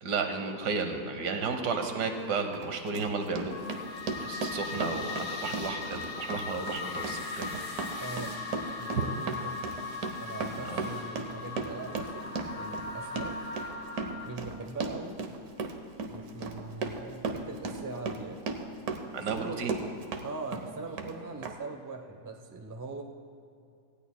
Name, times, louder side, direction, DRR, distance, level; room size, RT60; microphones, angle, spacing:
voice 1, 0.0-3.6 4.2-7.2 9.0-9.1 10.7-10.9 19.1-19.7, right 4 dB, 85° right, 6 dB, 1.6 m, -32 dB
Run, 1.9-2.1 2.5-20.3 20.5-21.1 21.4-21.5, right 3 dB, 70° right, 1.3 m, -36 dB
sound 1, 3.5-14.3, left 4 dB, 20° left, 1.5 m, -39 dB
voice 2, 8.0-8.4 8.8-9.6 10.2-13.3 14.2-15.2 16.1-18.4 19.3-19.6 20.2-23.0, right 3 dB, 20° right, 2 dB, 0.5 m, -41 dB
18.5 x 15.0 x 2.2 m, 2.4 s
omnidirectional pair, 1.7 m